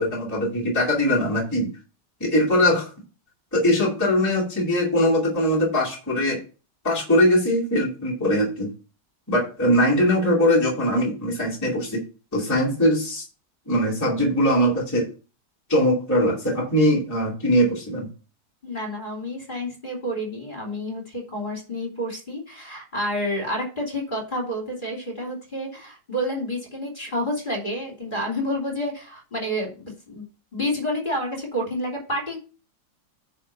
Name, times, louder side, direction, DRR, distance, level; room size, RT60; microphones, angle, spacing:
voice 1, 0.0-1.7 2.2-2.9 3.5-6.4 6.8-8.7 9.3-12.0 12.3-13.2 13.7-15.1 15.7-18.1, equal, 10° left, -6 dB, 2.4 m, -21 dB
voice 2, 18.6-30.2 30.5-32.4, equal, 25° left, -2 dB, 3.1 m, -29 dB
9.8 x 3.8 x 5.5 m, 0.34 s
omnidirectional pair, 1.9 m